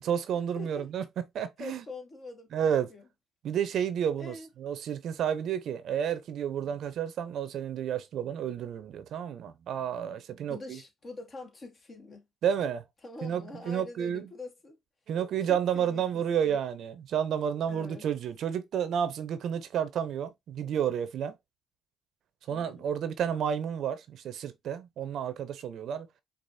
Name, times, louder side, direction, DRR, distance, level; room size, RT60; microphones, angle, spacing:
voice 1, 0.0-1.0 1.3-1.8 2.5-2.9 3.4-10.8 12.4-12.8 13.2-14.3 15.1-21.3 22.5-26.1, right 8 dB, 65° right, 0.6 m, -31 dB
voice 2, 0.6-0.9 1.6-3.0 4.2-4.5 10.5-12.2 13.0-14.8 15.5-16.6 17.7-18.0 22.5-22.9, left 2 dB, 40° left, 1.2 m, -45 dB
4.8 x 2.4 x 2.6 m
supercardioid pair, 75°, 0 cm